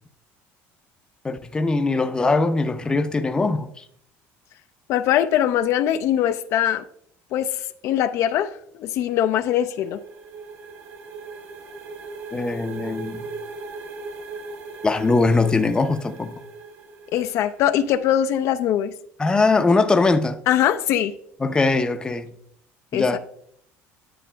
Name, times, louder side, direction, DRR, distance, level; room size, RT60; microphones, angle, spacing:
voice 1, 1.2-3.7 12.3-13.2 14.8-16.3 19.2-20.4 21.4-22.3 22.9-23.2, left 3 dB, 15° left, 0.5 m, -21 dB
voice 2, 4.9-6.8 7.3-7.5 7.8-8.5 8.8-10.0 17.1-18.9 20.5-21.1 22.9-23.2, left 11 dB, 60° left, 0.4 m, -21 dB
sound 1, 9.1-17.8, right 3 dB, 50° right, 1.0 m, -38 dB
10.0 x 7.5 x 2.2 m
cardioid pair, 125°, 5 cm